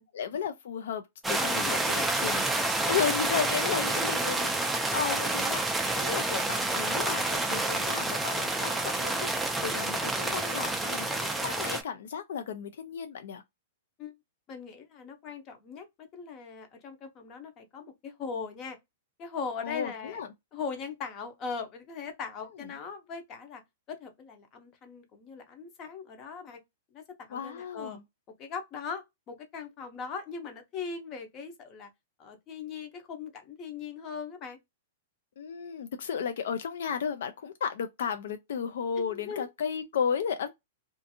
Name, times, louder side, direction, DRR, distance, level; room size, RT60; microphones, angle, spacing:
voice 1, 0.1-2.4 2.9-9.3 9.6-13.4 19.6-20.3 27.3-28.0 35.4-40.5, left 7 dB, 70° left, 0.3 m, -34 dB
sound 1, 1.2-11.8, right 2 dB, 5° right, 0.3 m, -29 dB
voice 2, 1.4-2.4 4.0-4.2 5.2-5.3 14.0-14.1 14.5-18.8 19.2-20.2 20.5-23.6 23.9-26.6 26.9-28.0 28.4-31.9 32.2-34.6 39.0-39.5, left 5 dB, 30° left, 0.7 m, -40 dB
2.5 x 2.4 x 2.6 m
hypercardioid pair, 155°, 0 cm